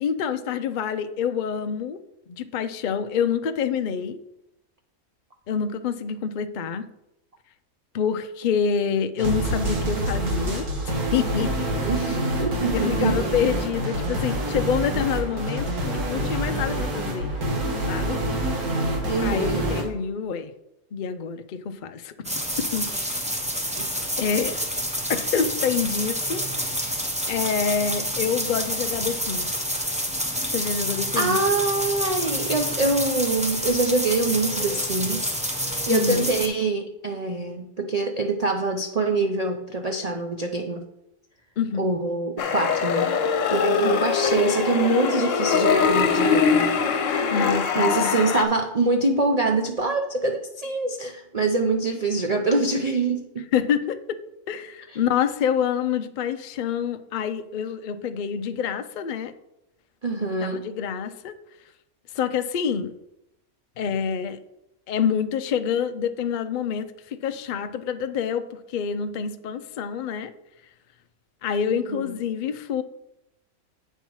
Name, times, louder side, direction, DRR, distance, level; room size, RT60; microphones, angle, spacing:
voice 1, 0.0-2.0 2.3-4.2 5.5-6.9 7.9-10.7 11.1-11.7 12.7-17.3 17.9-18.2 19.2-20.5 20.9-22.1 22.6-23.1 23.8-24.6 25.1-27.0 27.3-29.5 30.5-31.4 35.9-36.3 41.6-41.9 43.8-44.0 47.3-48.1 53.5-54.2 54.5-59.3 60.2-61.3 62.1-62.9 63.8-64.4 64.9-70.3 71.4-72.8, left 7 dB, 80° left, 9 dB, 0.4 m, -27 dB
sound 1, 9.2-19.8, right 1 dB, 80° right, 1.9 m, -26 dB
voice 2, 11.8-13.3 19.0-19.7 23.1-23.2 23.8-23.9 31.2-35.4 35.6-40.8 41.8-43.1 43.5-46.7 47.0-47.3 47.7-53.5 54.9-55.0 60.0-60.6 71.7-72.1, right 3 dB, 55° right, 4 dB, 0.4 m, -25 dB
sound 2, 22.2-36.5, equal, 5° right, 0.7 m, -28 dB
sound 3, 42.4-48.4, left 6 dB, 65° left, 1.1 m, -22 dB
8.2 x 5.6 x 4.6 m, 0.85 s
omnidirectional pair, 1.6 m